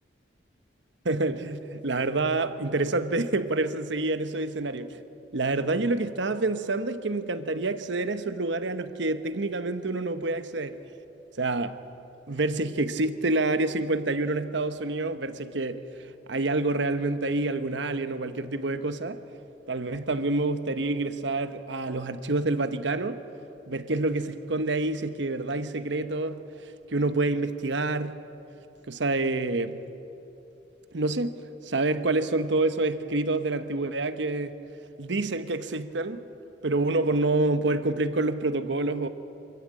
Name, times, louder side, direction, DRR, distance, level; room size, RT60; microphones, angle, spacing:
voice 1, 1.0-5.0 5.3-10.8 11.4-11.8 12.3-15.8 16.3-19.2 19.7-23.2 23.7-26.4 26.9-28.2 28.9-29.8 30.9-31.4 31.6-34.6 35.0-36.2 36.6-39.1, right 2 dB, 70° right, 1.0 m, -27 dB
25.5 x 14.5 x 8.8 m
head